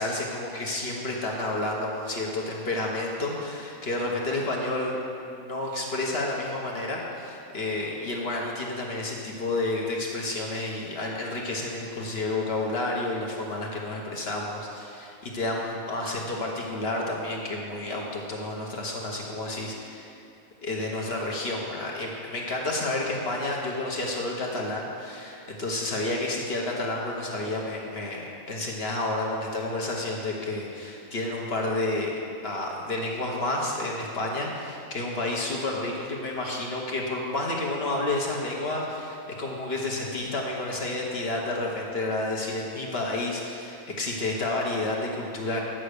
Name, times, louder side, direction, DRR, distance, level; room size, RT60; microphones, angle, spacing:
voice 1, 0.0-5.0 5.3-20.1 20.6-32.1 32.4-45.6, left 2 dB, 45° left, -2 dB, 1.2 m, -30 dB
9.0 x 5.8 x 6.6 m, 2.7 s
omnidirectional pair, 1.6 m